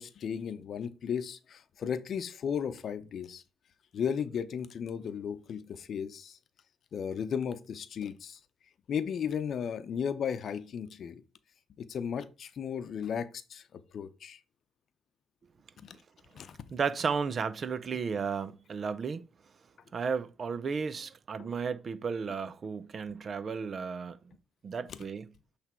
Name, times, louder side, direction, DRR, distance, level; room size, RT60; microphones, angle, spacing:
voice 1, 0.0-3.4 3.9-6.4 6.9-8.4 8.9-11.2 11.8-14.4 15.8-16.0 16.3-16.6, left 7 dB, 60° left, 0.7 m, -35 dB
voice 2, 16.7-19.2 19.9-24.2 24.6-25.3, right 5 dB, 45° right, 0.5 m, -33 dB
8.1 x 3.4 x 4.4 m
cardioid pair, 90°, 0 cm